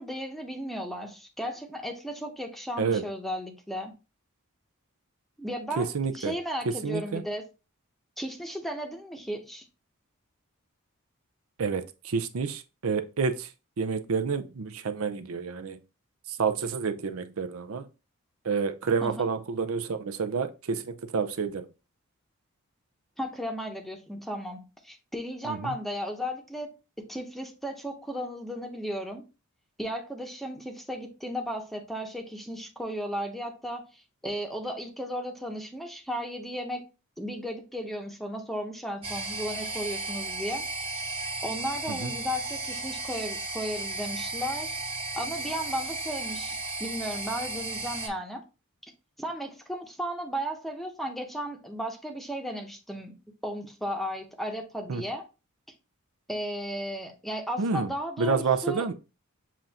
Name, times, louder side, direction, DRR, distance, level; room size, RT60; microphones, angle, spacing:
voice 1, 0.0-3.9 5.4-7.5 8.2-9.6 19.0-19.3 23.2-29.2 29.8-36.9 37.2-40.7 41.4-44.8 45.2-48.4 49.2-53.1 53.4-55.3 56.3-58.9, equal, ahead, 0.8 m, -35 dB
voice 2, 5.8-6.3 6.6-7.2 11.6-13.5 13.8-15.8 16.3-17.8 18.4-21.7 25.4-25.7 41.9-42.1 54.9-55.0 57.6-57.9 58.2-58.9, right 5 dB, 70° right, 0.6 m, -29 dB
sound 1, 39.0-48.1, right 2 dB, 25° right, 1.0 m, -34 dB
7.4 x 2.5 x 2.8 m
head